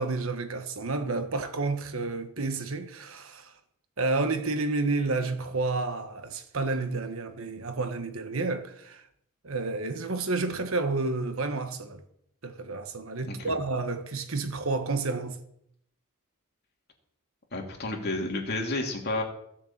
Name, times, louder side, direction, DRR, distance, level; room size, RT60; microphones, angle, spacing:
voice 1, 0.0-3.5 4.0-9.1 9.4-12.0 12.4-15.4, right 3 dB, 65° right, 1.3 m, -30 dB
voice 2, 17.5-19.2, left 2 dB, 45° left, 2.8 m, -31 dB
16.0 x 7.0 x 7.3 m
head